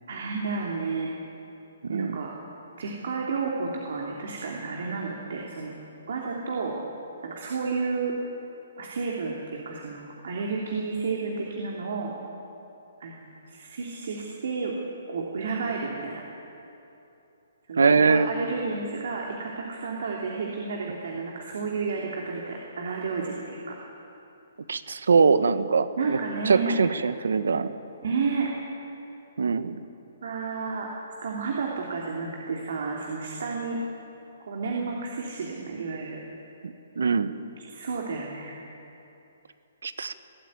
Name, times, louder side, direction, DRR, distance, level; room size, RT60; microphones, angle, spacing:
voice 1, 0.1-1.1 1.9-2.4 2.8-5.7 6.1-6.8 7.2-8.2 8.8-12.1 13.0-14.7 15.1-16.3 17.7-23.8 26.0-26.8 28.0-28.5 30.2-30.9 31.2-33.8 34.4-36.2 37.7-38.6, right 4 dB, 70° right, -1 dB, 3.1 m, -31 dB
voice 2, 1.8-2.2 17.8-18.3 24.7-26.2 26.4-27.7 29.4-29.7 36.6-37.3 39.8-40.1, right 5 dB, 85° right, 12 dB, 1.3 m, -22 dB
22.0 x 13.5 x 9.7 m, 2.9 s
hypercardioid pair, 150°, 0 cm